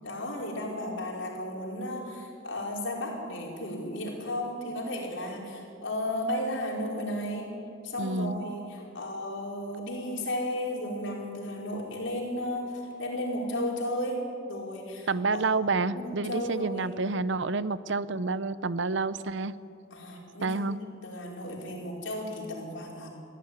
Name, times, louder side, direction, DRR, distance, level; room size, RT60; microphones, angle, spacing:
voice 1, 0.0-7.6 7.8-15.4 15.9-16.9 19.9-20.7 21.0-23.1, left 1 dB, 70° left, -2 dB, 5.1 m, -34 dB
voice 2, 8.0-8.4 15.1-19.5 20.4-20.8, right 3 dB, 65° right, 15 dB, 0.7 m, -29 dB
22.0 x 14.5 x 9.8 m, 2.5 s
head